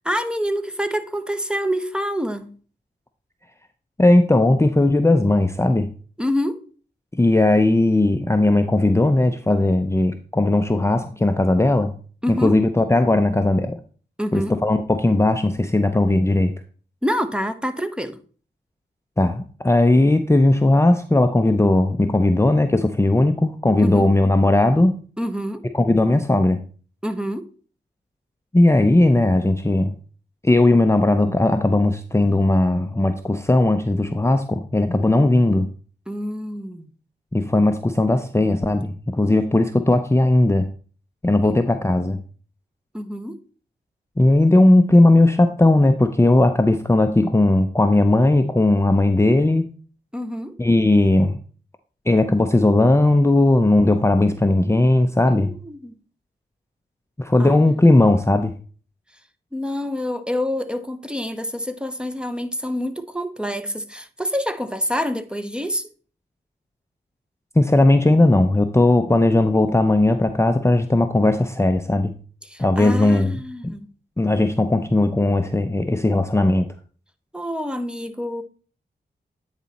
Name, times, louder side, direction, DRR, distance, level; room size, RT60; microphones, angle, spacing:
voice 1, 0.0-2.5 6.2-6.6 12.2-12.6 14.2-14.6 17.0-18.2 23.8-24.1 25.2-25.6 27.0-27.5 36.1-36.9 39.3-39.5 41.4-41.6 42.9-43.4 50.1-50.5 55.3-55.9 57.4-57.8 59.5-65.9 72.4-73.9 77.3-78.4, equal, 5° right, 0.9 m, -27 dB
voice 2, 4.0-5.9 7.2-11.9 12.4-13.8 14.3-16.5 19.2-25.0 25.7-26.6 28.5-29.9 30.4-35.7 37.3-40.7 41.2-42.2 44.2-49.7 50.6-51.4 52.1-55.5 57.2-58.5 67.6-72.1 72.6-73.4 74.2-76.7, left 2 dB, 15° left, 0.6 m, -17 dB
9.2 x 4.1 x 4.2 m
cardioid pair, 40°, 19 cm